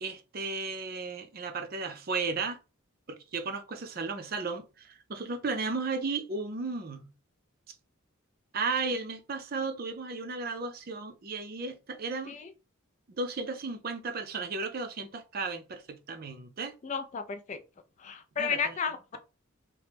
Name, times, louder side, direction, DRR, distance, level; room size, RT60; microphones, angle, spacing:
voice 1, 0.0-2.6 3.1-7.1 8.5-12.4 13.2-16.7 18.4-18.7, right 4 dB, 45° right, 0.5 m, -34 dB
voice 2, 16.8-17.6 18.0-19.2, left 6 dB, 35° left, 0.3 m, -33 dB
2.9 x 2.1 x 3.3 m
head